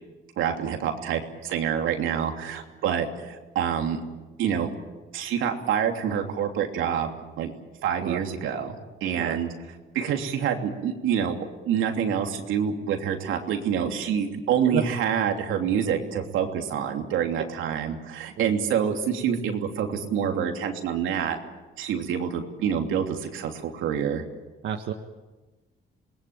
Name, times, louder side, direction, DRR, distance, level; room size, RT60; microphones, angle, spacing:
voice 1, 0.4-4.0 4.4-4.7 5.1-7.5 7.8-9.5 9.9-21.4 21.8-24.2, right 8 dB, 90° right, 3 dB, 3.0 m, -27 dB
voice 2, 14.3-14.8 18.4-18.5 24.6-24.9, right 9 dB, 70° right, 4 dB, 1.6 m, -31 dB
27.0 x 20.0 x 9.0 m, 1.2 s
cardioid pair, 90°, 20 cm